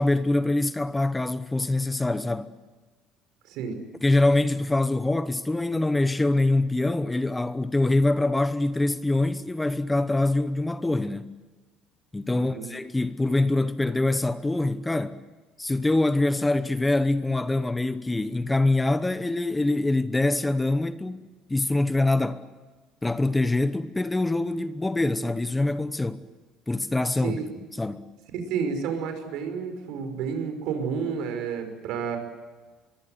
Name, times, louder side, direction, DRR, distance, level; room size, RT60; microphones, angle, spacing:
voice 1, 0.0-2.5 4.0-11.3 12.1-15.2 15.6-22.4 23.0-26.2 26.7-27.4 27.7-28.1, left 2 dB, 10° left, 0.9 m, -24 dB
voice 2, 3.5-3.8 12.3-12.7 27.2-27.4 28.3-32.2, right 6 dB, 70° right, 5.7 m, -30 dB
25.0 x 23.0 x 8.0 m
cardioid pair, 140°, 0 cm